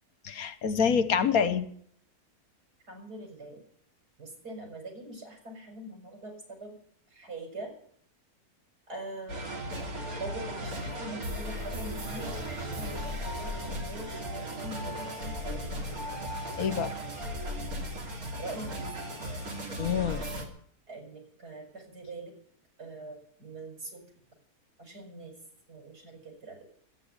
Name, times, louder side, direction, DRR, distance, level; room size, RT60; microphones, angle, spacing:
voice 1, 0.2-1.7 16.6-16.9 19.8-20.2, left 7 dB, 65° left, 12 dB, 1.5 m, -26 dB
voice 2, 2.9-3.6 4.2-6.8 7.1-7.7 8.9-15.9 18.4-18.9 20.9-22.4 22.8-24.0 24.8-25.4 25.7-26.6, right 2 dB, 90° right, 2 dB, 5.9 m, -43 dB
sound 1, 9.3-20.4, equal, 65° right, 3.2 m, -36 dB
13.0 x 9.3 x 9.9 m, 0.64 s
omnidirectional pair, 1.6 m